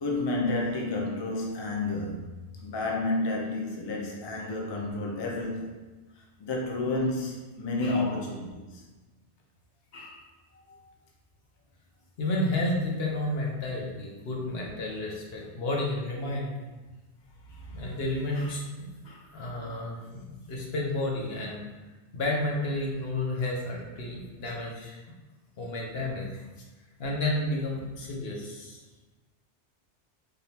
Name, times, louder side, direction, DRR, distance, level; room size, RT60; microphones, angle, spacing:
voice 1, 0.0-2.2 2.6-5.7 6.4-8.6 19.9-20.0, left 2 dB, 35° left, -1 dB, 0.4 m, -30 dB
voice 2, 12.2-16.5 17.7-21.7 22.1-25.0 25.6-26.4 27.0-28.8, left 1 dB, 60° left, -2 dB, 1.1 m, -31 dB
4.0 x 3.4 x 2.8 m, 1.2 s
omnidirectional pair, 1.2 m